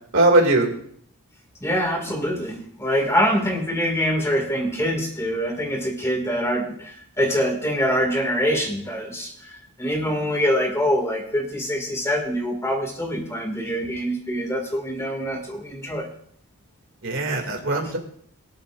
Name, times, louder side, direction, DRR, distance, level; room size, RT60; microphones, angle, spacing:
voice 1, 0.1-0.7 17.0-18.0, right 2 dB, 60° right, 2 dB, 2.6 m, -19 dB
voice 2, 1.6-16.1, equal, 15° left, 2 dB, 2.3 m, -24 dB
23.5 x 8.2 x 2.6 m, 0.64 s
head